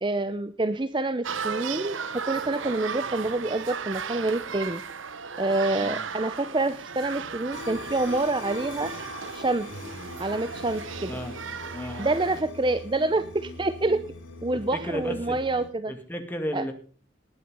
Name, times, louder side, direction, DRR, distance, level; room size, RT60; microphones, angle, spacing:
voice 1, 0.0-4.8 5.4-8.9 9.3-9.7 10.2-11.1 12.0-14.0 14.4-15.9 16.5-16.6, right 2 dB, 25° right, 12 dB, 0.6 m, -27 dB
sound 1, 1.2-12.4, right 6 dB, 80° right, 0.9 m, -36 dB
sound 2, 7.5-15.7, left 3 dB, 85° left, 4.2 m, -42 dB
voice 2, 11.6-12.1 14.5-15.4 15.9-16.7, equal, 10° left, 5 dB, 2.1 m, -34 dB
19.5 x 8.4 x 5.4 m, 0.41 s
head